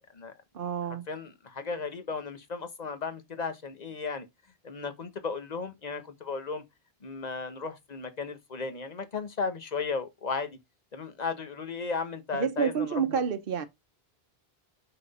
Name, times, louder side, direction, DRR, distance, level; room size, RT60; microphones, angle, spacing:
voice 1, 0.5-1.1 12.3-13.7, right 7 dB, 65° right, 1.0 m, -29 dB
voice 2, 1.1-4.2 4.6-6.6 7.0-10.6 10.9-13.2, left 4 dB, 45° left, 1.2 m, -35 dB
5.9 x 5.7 x 4.2 m
omnidirectional pair, 1.0 m